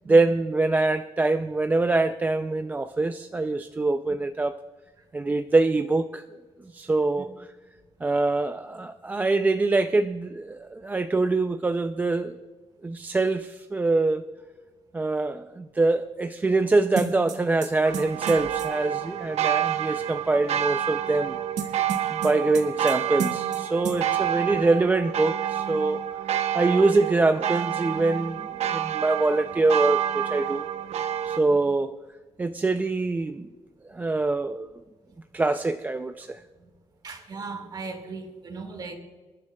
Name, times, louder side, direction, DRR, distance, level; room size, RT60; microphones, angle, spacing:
voice 1, 0.1-4.6 5.1-6.2 6.7-7.3 8.0-12.4 12.8-14.2 14.9-21.4 22.1-26.0 26.5-30.6 31.2-32.0 32.4-33.5 33.9-34.7 35.3-36.4, right 3 dB, 15° right, 0.3 m, -24 dB
sound 1, 17.0-18.7 21.6-22.9 23.2-23.6 23.8-24.0, right 6 dB, 80° right, 1.6 m, -32 dB
sound 2, 17.8-31.4, right 10 dB, 65° right, 0.7 m, -28 dB
voice 2, 23.9-24.7 31.5-31.7 36.2-36.3 36.6-36.7 37.0-39.0, right 4 dB, 35° right, 1.8 m, -39 dB
27.0 x 10.5 x 2.2 m
cardioid pair, 160°, 12 cm